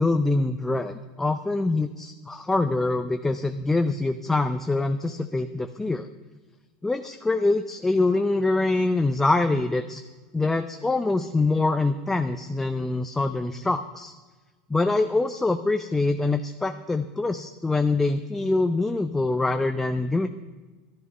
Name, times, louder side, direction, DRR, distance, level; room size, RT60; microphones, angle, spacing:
voice 1, 0.0-6.1 6.8-10.0 10.3-14.1 14.7-20.3, left 2 dB, 10° left, 7 dB, 0.5 m, -24 dB
12.5 x 11.0 x 5.4 m, 1.3 s
supercardioid pair, 125°, 3 cm